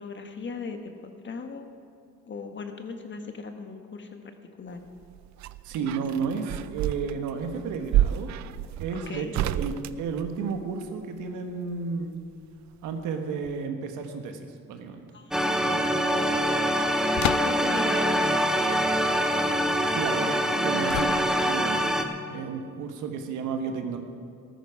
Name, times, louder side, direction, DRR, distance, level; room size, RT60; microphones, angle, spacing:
voice 1, 0.0-1.7 2.3-4.8 5.7-6.2 9.1-9.3 15.1-16.2 17.2-18.2, left 4 dB, 40° left, 6 dB, 1.4 m, -39 dB
sound 1, 4.9-10.9 12.3-13.2 13.4-13.5, right 12 dB, 65° right, 0.5 m, -30 dB
voice 2, 5.6-8.3 8.8-12.1 12.8-15.0 19.9-24.0, right 5 dB, 85° right, 6 dB, 1.4 m, -32 dB
sound 2, 15.3-22.0, equal, ahead, 1.1 m, -24 dB
sound 3, 17.2-17.8 20.9-21.6, left 14 dB, 65° left, 0.4 m, -31 dB
13.5 x 13.5 x 4.9 m, 2.3 s
cardioid pair, 90°, 30 cm